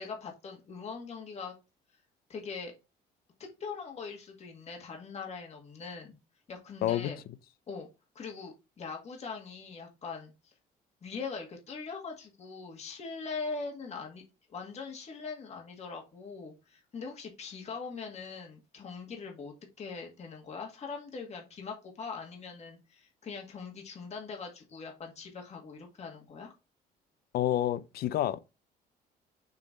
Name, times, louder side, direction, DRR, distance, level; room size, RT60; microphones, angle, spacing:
voice 1, 0.0-1.5 2.3-2.7 3.4-6.2 6.5-7.2 7.7-7.9 8.2-10.5 11.0-14.2 14.5-26.5, left 5 dB, 40° left, 1.9 m, -41 dB
voice 2, 6.8-7.1 27.3-28.4, left 12 dB, 65° left, 0.5 m, -28 dB
6.5 x 3.1 x 5.2 m
cardioid pair, 110°, 17 cm